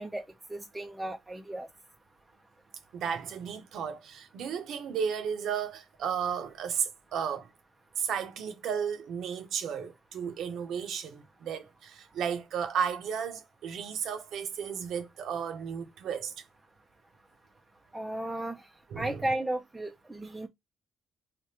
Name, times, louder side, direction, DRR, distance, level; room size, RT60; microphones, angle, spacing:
voice 1, 0.0-1.7 17.9-18.6 19.0-20.5, right 1 dB, 10° right, 0.4 m, -34 dB
voice 2, 2.9-7.5 8.0-16.3 18.9-19.2, right 7 dB, 75° right, 0.7 m, -34 dB
3.4 x 2.1 x 2.8 m
cardioid pair, 105°, 0 cm